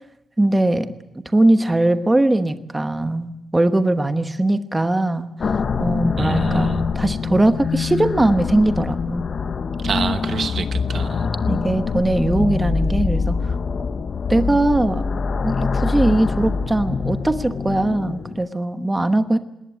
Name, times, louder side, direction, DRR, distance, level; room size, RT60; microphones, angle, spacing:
voice 1, 0.4-0.9 1.3-9.2 11.5-13.6 14.3-15.0 15.4-19.4, right 1 dB, 15° right, 9 dB, 1.1 m, -20 dB
sound 1, 5.4-18.5, left 5 dB, 45° left, 0.8 m, -24 dB
voice 2, 6.2-6.8 9.8-11.3, right 6 dB, 50° right, 10 dB, 1.0 m, -27 dB
20.0 x 19.0 x 8.3 m, 0.88 s
wide cardioid pair, 135°, 0 cm